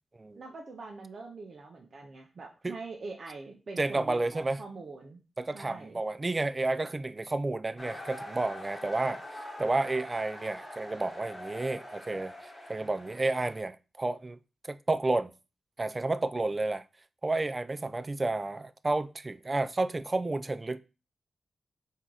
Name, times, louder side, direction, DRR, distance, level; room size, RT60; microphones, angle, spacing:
voice 1, 0.4-5.2 5.5-6.0, right 3 dB, 60° right, 0.6 m, -44 dB
voice 2, 3.8-4.6 5.4-9.2 9.6-12.3 12.7-14.4 14.7-15.3 15.8-16.8 17.2-20.8, right 2 dB, 30° right, 0.3 m, -31 dB
sound 1, 7.8-13.6, left 1 dB, 25° left, 1.4 m, -44 dB
3.7 x 2.8 x 4.5 m
cardioid pair, 80°, 0 cm